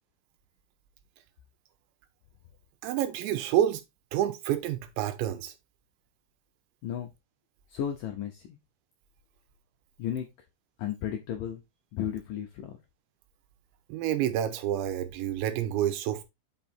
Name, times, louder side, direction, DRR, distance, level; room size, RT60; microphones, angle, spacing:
voice 1, 2.8-3.8 4.1-5.5 13.9-16.2, right 11 dB, 80° right, 3.2 m, -28 dB
voice 2, 7.7-8.6 10.0-10.3 10.8-11.6 11.9-12.8, left 10 dB, 85° left, 1.9 m, -34 dB
6.1 x 5.9 x 4.4 m
omnidirectional pair, 5.2 m